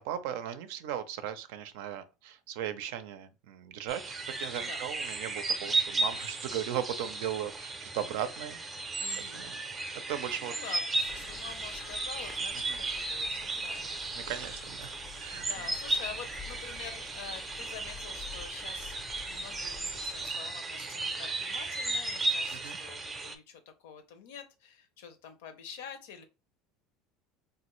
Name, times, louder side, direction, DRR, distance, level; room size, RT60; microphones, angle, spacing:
voice 1, 0.0-8.6 9.3-9.5 10.1-10.6 12.7-12.8 14.1-15.5 22.5-22.8, right 10 dB, 80° right, 0.4 m, -37 dB
sound 1, 3.9-23.4, right 2 dB, 20° right, 0.5 m, -35 dB
voice 2, 9.0-9.5 10.4-14.3 15.3-26.2, left 7 dB, 90° left, 0.6 m, -47 dB
sound 2, 10.9-20.3, left 8 dB, 45° left, 0.3 m, -50 dB
3.0 x 2.4 x 3.0 m
supercardioid pair, 135°, 0 cm